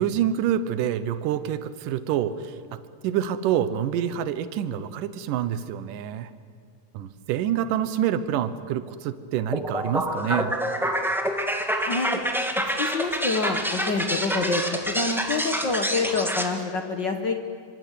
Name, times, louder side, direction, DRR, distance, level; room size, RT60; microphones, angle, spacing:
voice 1, 0.0-2.5 3.0-6.3 6.9-10.5, right 10 dB, 75° right, 13 dB, 2.5 m, -27 dB
sound 1, 9.5-16.5, equal, ahead, 0.7 m, -27 dB
voice 2, 11.8-12.2 12.8-17.4, left 3 dB, 60° left, 5 dB, 1.1 m, -27 dB
26.5 x 26.0 x 8.4 m, 2.1 s
omnidirectional pair, 4.1 m